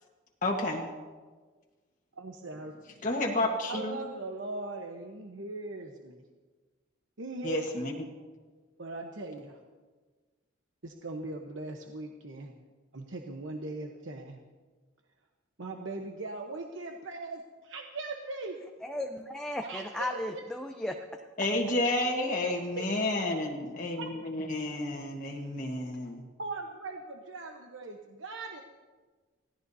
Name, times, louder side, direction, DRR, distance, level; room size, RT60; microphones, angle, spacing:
voice 1, 0.4-0.9 3.0-4.0 7.4-7.9 21.4-26.2, left 2 dB, 40° left, -1 dB, 1.4 m, -30 dB
voice 2, 2.2-2.7 3.7-6.2 7.2-7.7 8.8-9.6 10.8-12.5 12.9-14.4 15.6-18.6 19.6-20.4 22.7-22.9 24.0-24.1 26.4-28.6, right 2 dB, 75° right, 2 dB, 1.0 m, -39 dB
voice 3, 18.8-21.1, left 1 dB, 5° left, 2 dB, 0.6 m, -35 dB
25.5 x 16.5 x 2.8 m, 1.4 s
head